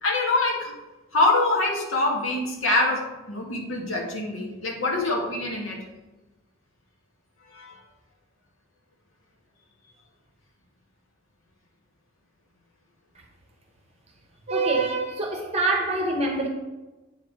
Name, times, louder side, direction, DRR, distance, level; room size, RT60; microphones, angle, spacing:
voice 1, 0.0-0.7 1.1-5.8 7.5-7.7, left 2 dB, 75° left, 2.0 m, -25 dB
voice 2, 14.5-16.5, right 2 dB, 30° right, 0.9 m, -25 dB
8.5 x 5.0 x 4.8 m
head